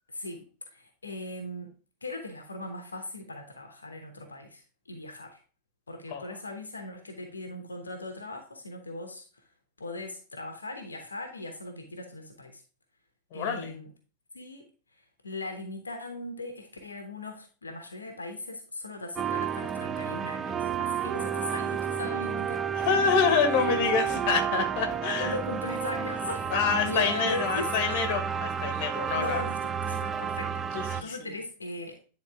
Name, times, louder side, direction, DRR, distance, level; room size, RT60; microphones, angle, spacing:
voice 1, 0.1-5.4 5.9-9.3 9.8-12.6 13.3-13.9 14.3-14.7 15.2-22.9 25.2-28.0 29.2-32.0, left 2 dB, 75° left, 5 dB, 1.0 m, -38 dB
voice 2, 13.3-13.7 22.8-25.4 26.5-29.4 30.7-31.2, left 6 dB, 45° left, 6 dB, 1.4 m, -27 dB
sound 1, 19.2-31.0, right 8 dB, 20° right, 0.4 m, -31 dB
9.9 x 3.8 x 3.5 m, 0.36 s
figure-of-eight pair, 90°, 0 cm